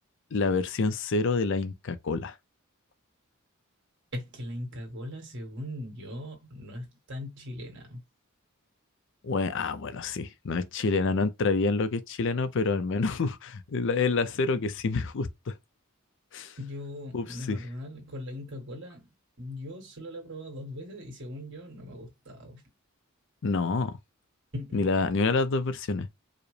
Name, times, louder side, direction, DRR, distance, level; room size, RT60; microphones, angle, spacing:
voice 1, 0.3-2.4 9.2-15.5 16.3-16.5 17.1-17.6 23.4-24.0 24.7-26.1, left 4 dB, 60° left, 0.5 m, -27 dB
voice 2, 4.1-8.0 16.6-22.6 24.5-25.0, left 1 dB, 60° right, 1.7 m, -40 dB
4.8 x 2.1 x 3.2 m
head